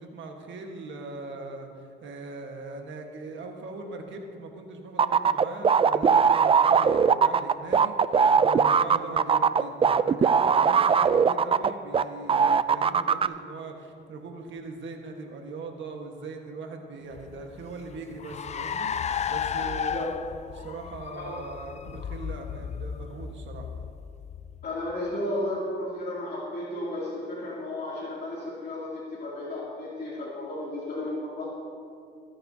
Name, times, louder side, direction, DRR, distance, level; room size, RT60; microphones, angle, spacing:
voice 1, 0.0-20.1 20.5-23.7, right 3 dB, 70° right, 3 dB, 1.5 m, -40 dB
sound 1, 5.0-12.0 12.3-13.3, right 6 dB, 30° right, 0.4 m, -20 dB
Car, 17.1-24.9, left 7 dB, 35° left, 0.4 m, -34 dB
voice 2, 24.6-31.5, left 1 dB, 55° left, -7 dB, 2.8 m, -33 dB
22.5 x 9.8 x 2.8 m, 2.4 s
cardioid pair, 90°, 20 cm